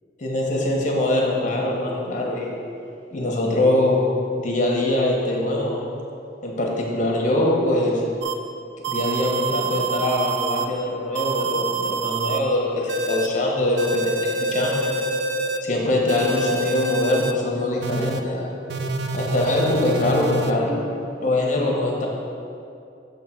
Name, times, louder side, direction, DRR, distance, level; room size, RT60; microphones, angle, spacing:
voice 1, 0.2-2.5 3.1-4.1 4.4-5.8 6.4-8.0 8.9-14.9 15.6-18.5 19.1-20.8 21.2-22.1, left 1 dB, 45° left, -2 dB, 1.0 m, -23 dB
sound 1, 8.2-8.3 8.8-10.7 11.2-12.4 12.9-13.3 13.8-15.6 16.1-17.3 17.8-18.2 18.7-20.5, right 3 dB, 65° right, 0.4 m, -26 dB
6.8 x 3.6 x 5.8 m, 2.5 s
head